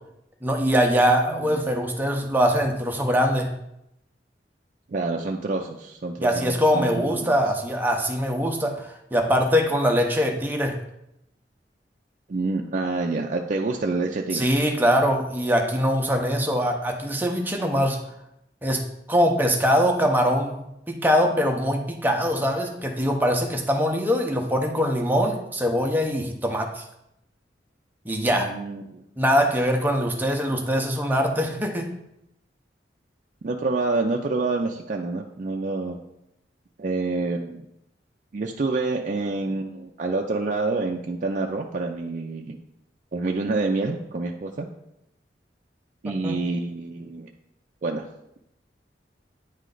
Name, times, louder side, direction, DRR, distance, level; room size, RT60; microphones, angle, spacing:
voice 1, 0.4-3.5 6.2-10.8 14.3-18.0 18.6-18.8 19.1-26.8 28.1-28.5 29.2-31.9 46.2-46.4, equal, 10° right, 2 dB, 0.7 m, -22 dB
voice 2, 1.3-1.6 4.9-7.3 12.3-14.5 28.3-29.0 33.4-36.0 36.8-37.7 38.3-42.6 43.1-44.7 46.0-47.3 47.8-48.1, right 3 dB, 45° right, 1 dB, 0.4 m, -27 dB
9.0 x 3.2 x 3.8 m, 0.82 s
head